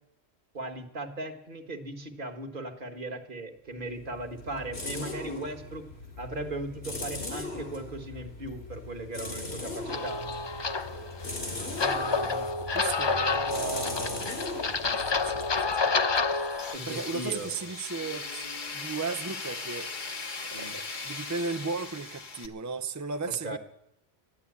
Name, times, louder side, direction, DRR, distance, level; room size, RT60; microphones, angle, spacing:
voice 1, 0.5-5.9 6.2-10.2 16.6-17.5 20.5-20.8 23.4-23.6, right 2 dB, 50° right, 1.6 m, -38 dB
sound 1, 3.8-16.4, left 2 dB, 75° left, 3.1 m, -39 dB
sound 2, 9.9-16.7, left 4 dB, 30° left, 0.5 m, -29 dB
voice 2, 11.8-15.5 15.8-16.1 16.4-18.4 18.7-19.9 20.5-23.6, right 4 dB, 25° right, 0.4 m, -36 dB
Tools, 16.6-22.5, left 4 dB, 50° left, 1.2 m, -38 dB
13.0 x 10.5 x 8.5 m
omnidirectional pair, 1.1 m